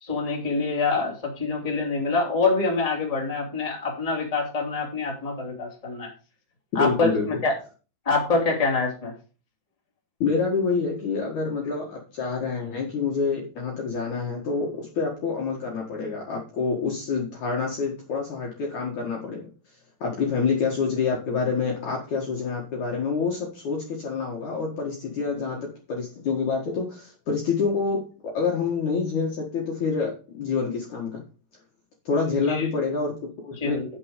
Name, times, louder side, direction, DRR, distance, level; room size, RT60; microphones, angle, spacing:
voice 1, 0.0-6.1 6.7-7.5 8.0-9.1 32.3-32.7 33.6-33.8, left 3 dB, 10° left, -1 dB, 2.1 m, -25 dB
voice 2, 6.8-7.3 10.2-19.5 20.0-28.0 28.3-31.2 32.1-33.8, left 5 dB, 55° left, -1 dB, 2.5 m, -27 dB
9.7 x 6.1 x 5.2 m, 0.35 s
omnidirectional pair, 5.0 m